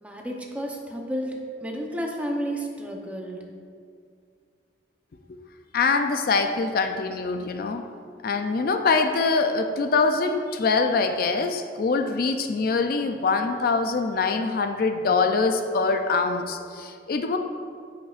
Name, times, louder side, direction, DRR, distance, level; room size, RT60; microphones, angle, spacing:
voice 1, 0.0-3.4, equal, 10° right, 0 dB, 0.7 m, -31 dB
voice 2, 5.7-7.8 8.2-17.4, left 4 dB, 55° left, 6 dB, 0.4 m, -24 dB
13.0 x 5.3 x 2.5 m, 2.3 s
head